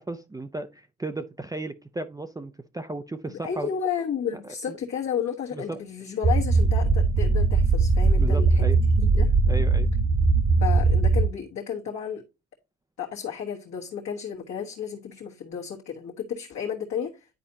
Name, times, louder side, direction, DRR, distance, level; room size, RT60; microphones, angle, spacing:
voice 1, 0.0-3.7 4.7-4.8 5.5-5.8 8.2-8.8 9.5-9.9, right 2 dB, 10° right, 0.5 m, -35 dB
voice 2, 3.2-8.7 9.0-9.3 10.6-12.2 13.0-17.4, left 8 dB, 60° left, 1.4 m, -32 dB
sound 1, 6.2-11.3, right 3 dB, 55° right, 1.4 m, -20 dB
10.0 x 4.2 x 2.7 m
cardioid pair, 90°, 30 cm